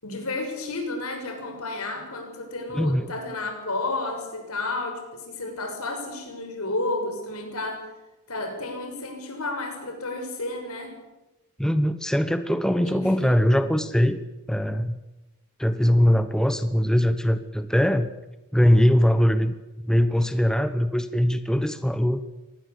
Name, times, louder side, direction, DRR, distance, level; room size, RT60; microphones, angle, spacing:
voice 1, 0.0-7.9 8.3-11.0 12.8-13.8, left 2 dB, 75° left, 4 dB, 6.7 m, -32 dB
voice 2, 2.7-3.1 11.6-14.2 14.5-15.0 15.6-18.1 18.5-19.5 19.8-22.2, equal, 5° left, 10 dB, 1.0 m, -21 dB
25.0 x 19.5 x 8.4 m, 1.0 s
head